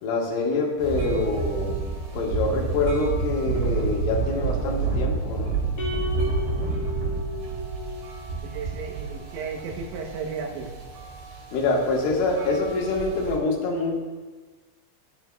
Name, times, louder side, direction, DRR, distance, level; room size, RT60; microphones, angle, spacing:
voice 1, 0.0-1.8 2.1-5.6 11.5-14.0, left 3 dB, 90° left, -2 dB, 4.1 m, -25 dB
sound 1, 0.8-13.4, right 4 dB, 60° right, 3.6 m, -29 dB
sound 2, 5.8-8.2, left 3 dB, 70° left, 1.0 m, -34 dB
voice 2, 8.4-10.7, right 5 dB, 75° right, 1 dB, 3.2 m, -34 dB
13.0 x 12.0 x 2.4 m, 1.3 s
omnidirectional pair, 5.5 m